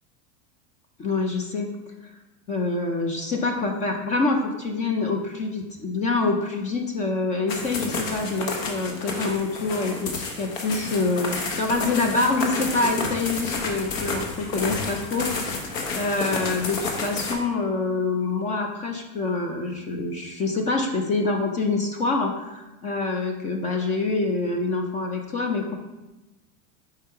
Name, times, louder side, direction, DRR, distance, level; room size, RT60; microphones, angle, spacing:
voice 1, 1.0-1.7 2.5-10.1 10.4-25.8, left 3 dB, 20° left, 3 dB, 0.3 m, -26 dB
sound 1, 7.5-17.3, left 3 dB, 90° left, 1.2 m, -30 dB
5.1 x 4.6 x 4.3 m, 1.0 s
supercardioid pair, 145°, 39 cm